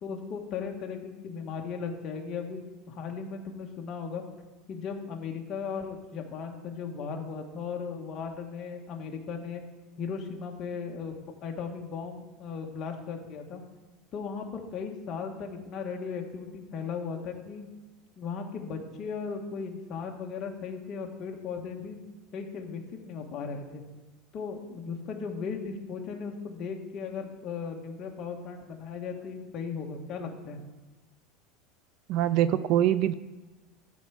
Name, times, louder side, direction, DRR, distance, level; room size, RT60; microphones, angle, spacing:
voice 1, 0.0-4.2 4.7-9.6 10.0-13.6 14.1-17.6 18.2-22.0 22.3-23.8 24.3-30.6, left 5 dB, 35° left, 2 dB, 1.5 m, -37 dB
voice 2, 32.1-33.1, right 11 dB, 50° right, 15 dB, 0.4 m, -24 dB
12.0 x 4.7 x 7.0 m, 1.2 s
supercardioid pair, 155°, 0 cm